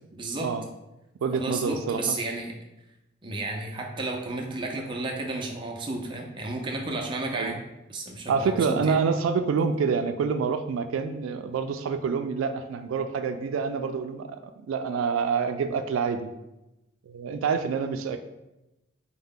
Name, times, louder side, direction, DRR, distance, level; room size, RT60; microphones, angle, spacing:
voice 1, 0.1-0.5 1.3-2.5 3.2-7.6 7.9-9.0, right 2 dB, 25° right, 1 dB, 0.5 m, -32 dB
voice 2, 1.2-2.2 7.3-7.5 8.3-14.4 14.7-16.3 17.1-18.2, right 5 dB, 90° right, 8 dB, 0.3 m, -27 dB
4.3 x 2.1 x 3.6 m, 0.94 s
head